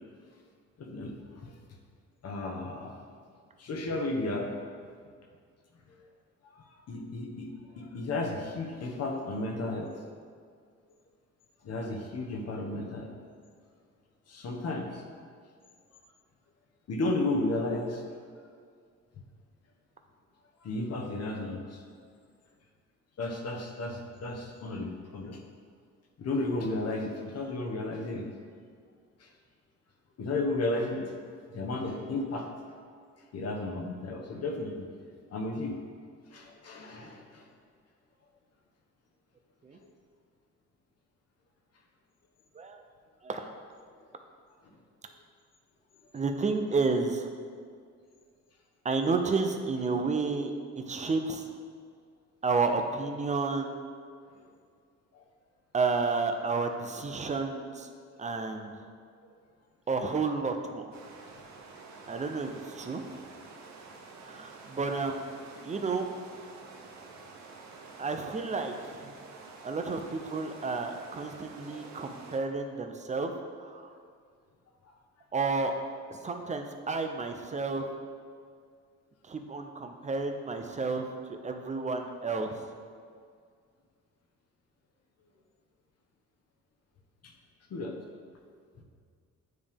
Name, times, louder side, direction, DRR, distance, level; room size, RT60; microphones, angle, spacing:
voice 1, 0.8-1.5 2.2-2.9 3.6-4.5 6.9-7.5 7.8-9.9 11.6-13.1 14.3-15.0 16.9-18.0 20.6-21.8 23.2-25.4 26.2-28.3 29.2-29.3 30.2-31.2 31.5-32.5 33.3-34.9 35.3-35.8 36.3-37.4 54.3-54.4 55.1-55.2 71.7-71.9 87.2-87.3 87.7-88.0, left 2 dB, 55° left, 2 dB, 1.1 m, -33 dB
voice 2, 43.2-43.5 46.1-47.3 48.8-51.5 52.4-53.7 55.7-57.9 58.2-58.9 59.9-61.0 62.1-63.2 64.2-65.3 65.6-66.1 68.0-69.2 69.6-73.9 75.3-75.7 76.1-77.9 79.2-82.7, right 4 dB, 25° right, 5 dB, 0.6 m, -31 dB
sound 1, 60.9-72.4, right 4 dB, 65° right, 0.9 m, -49 dB
9.5 x 3.3 x 3.6 m, 2.1 s
cardioid pair, 90°, 30 cm